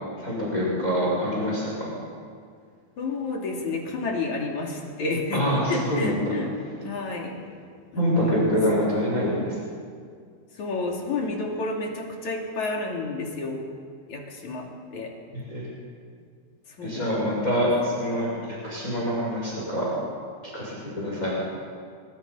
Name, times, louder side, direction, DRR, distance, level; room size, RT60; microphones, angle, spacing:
voice 1, 0.2-2.0 5.3-6.3 8.0-9.6 15.3-15.7 16.8-19.9 20.4-21.4, equal, 20° left, -5 dB, 6.4 m, -25 dB
voice 2, 3.0-6.5 6.8-7.4 7.9-8.4 8.7-8.8 10.6-13.6 14.1-15.1 16.8-17.1 17.6-17.7, left 3 dB, 50° left, 0 dB, 4.1 m, -30 dB
28.5 x 25.0 x 5.7 m, 2.2 s
omnidirectional pair, 4.7 m